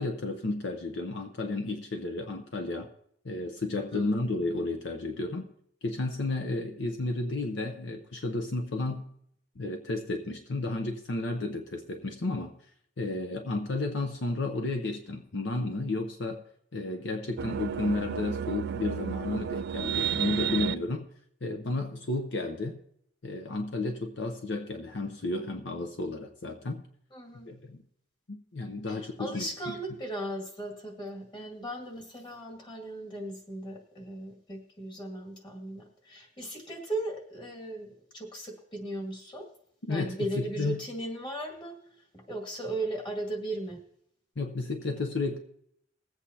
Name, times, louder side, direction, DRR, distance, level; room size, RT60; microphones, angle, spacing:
voice 1, 0.0-2.9 3.2-5.5 5.8-9.1 9.6-12.5 13.0-16.4 16.7-21.1 21.4-22.8 23.2-26.8 27.5-27.8 28.3-29.8 39.9-40.8 44.4-45.4, left 2 dB, 65° left, 5 dB, 0.8 m, -32 dB
sound 1, 17.4-20.8, right 8 dB, 60° right, 0.3 m, -32 dB
voice 2, 27.1-27.5 28.9-39.5 39.9-41.8 42.1-43.8, right 1 dB, 25° left, 1 dB, 2.1 m, -37 dB
20.5 x 8.2 x 2.8 m, 0.71 s
head